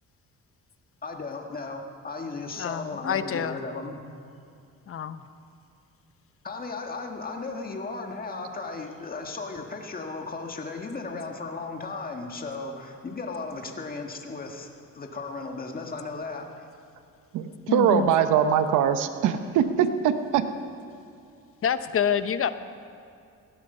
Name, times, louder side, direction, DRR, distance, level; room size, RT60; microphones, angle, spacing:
voice 1, 1.0-4.0 6.4-16.7, left 3 dB, 30° left, 2 dB, 1.7 m, -36 dB
voice 2, 2.6-3.6 4.9-5.2 17.7-18.1 21.6-22.5, left 8 dB, 45° left, 12 dB, 0.8 m, -27 dB
voice 3, 17.3-20.5, right 8 dB, 90° right, 10 dB, 0.9 m, -22 dB
17.5 x 11.0 x 5.5 m, 2.5 s
cardioid pair, 90°, 30 cm